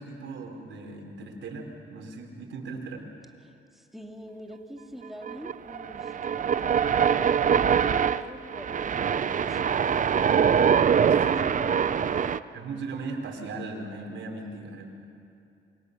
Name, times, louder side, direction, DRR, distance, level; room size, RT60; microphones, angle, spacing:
voice 1, 0.0-3.1 11.2-11.7 12.5-15.1, right 3 dB, 70° right, 2 dB, 4.5 m, -38 dB
voice 2, 3.4-10.2 14.3-14.8, equal, ahead, 2 dB, 2.6 m, -45 dB
sound 1, 5.3-12.4, right 7 dB, 40° right, 0.7 m, -23 dB
28.0 x 24.0 x 6.8 m, 2.6 s
cardioid pair, 90°, 20 cm